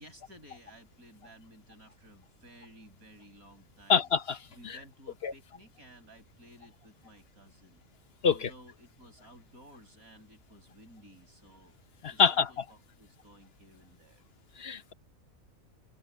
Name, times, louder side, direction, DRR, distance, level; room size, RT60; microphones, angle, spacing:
voice 1, 0.0-4.1 4.5-7.8 8.2-11.8 12.1-14.3, right 1 dB, 80° right, 7.3 m, -55 dB
voice 2, 3.9-4.4 4.6-4.8 5.2-5.3 8.2-8.5 12.0-12.5 14.6-14.9, left 6 dB, 45° left, 1.3 m, -25 dB
omnidirectional pair, 1.5 m